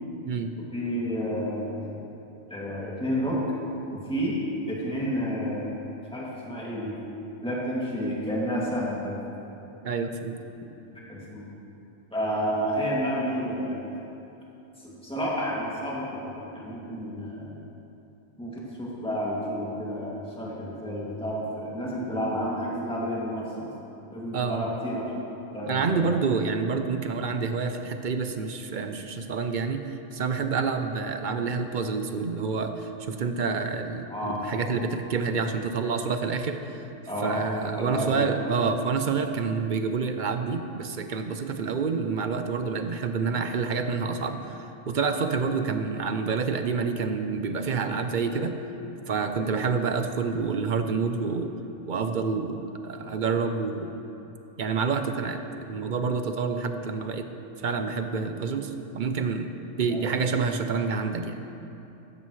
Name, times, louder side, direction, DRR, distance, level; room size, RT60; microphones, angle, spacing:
voice 1, 0.6-2.0 2.5-3.4 3.9-4.3 4.7-5.7 6.1-6.9 7.4-9.2 11.1-11.4 12.1-13.8 15.0-17.5 18.4-23.7 24.1-25.1 25.5-26.1 34.1-34.4 37.1-37.5 37.8-38.3 59.9-60.0, equal, 5° left, -6 dB, 2.3 m, -30 dB
voice 2, 9.8-10.4 24.3-24.7 25.7-29.8 30.1-36.8 37.2-48.6 49.1-51.5 51.9-53.9 54.6-57.3 57.6-59.5 59.8-61.4, right 5 dB, 50° right, 7 dB, 0.7 m, -28 dB
15.0 x 13.0 x 3.2 m, 2.9 s
omnidirectional pair, 1.3 m